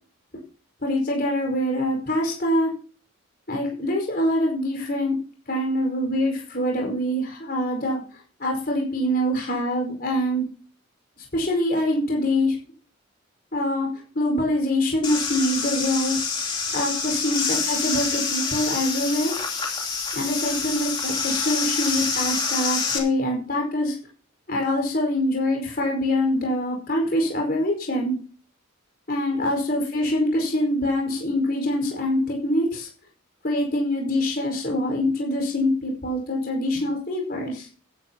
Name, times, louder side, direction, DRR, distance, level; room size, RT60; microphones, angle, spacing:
voice 1, 0.8-2.7 3.5-5.1 5.5-10.4 11.3-12.6 13.5-13.9 14.1-16.1 16.7-19.3 20.1-24.0 24.5-28.1 29.1-32.9 33.4-37.7, left 1 dB, 45° left, 0 dB, 5.0 m, -24 dB
sound 1, 15.0-23.0, left 5 dB, 20° left, 2.7 m, -27 dB
15.5 x 10.5 x 2.9 m, 0.40 s
head